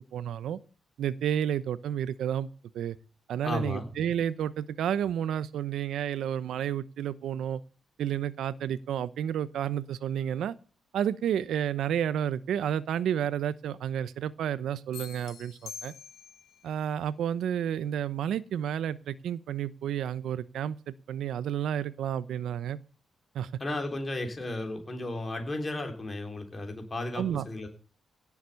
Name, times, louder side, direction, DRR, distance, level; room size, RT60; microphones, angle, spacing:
voice 1, 0.1-0.6 1.0-2.5 2.7-3.0 3.3-7.6 8.0-10.5 10.9-15.9 16.6-20.8 21.1-22.8 23.3-23.5 27.1-27.5, right 9 dB, 85° right, 16 dB, 0.8 m, -31 dB
voice 2, 3.4-3.9 23.6-27.7, left 2 dB, 20° left, 4 dB, 3.7 m, -34 dB
sound 1, 14.9-16.6, left 7 dB, 85° left, 2.0 m, -45 dB
17.0 x 7.3 x 6.9 m, 0.38 s
cardioid pair, 145°, 0 cm